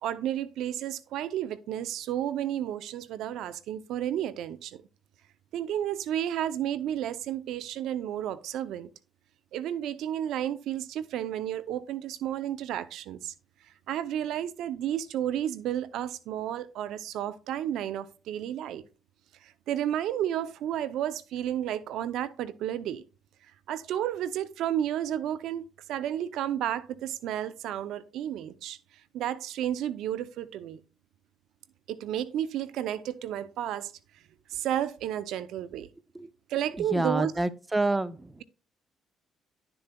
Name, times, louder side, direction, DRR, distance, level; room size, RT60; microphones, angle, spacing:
voice 1, 0.0-4.8 5.5-8.9 9.5-13.3 13.9-18.8 19.4-23.0 23.7-28.8 29.1-30.8 31.9-33.9 34.5-35.9 36.5-37.3, right 11 dB, 75° right, 0.5 m, -32 dB
voice 2, 36.9-38.3, right 2 dB, 15° right, 0.6 m, -27 dB
11.0 x 6.9 x 2.2 m
supercardioid pair, 70°, 0 cm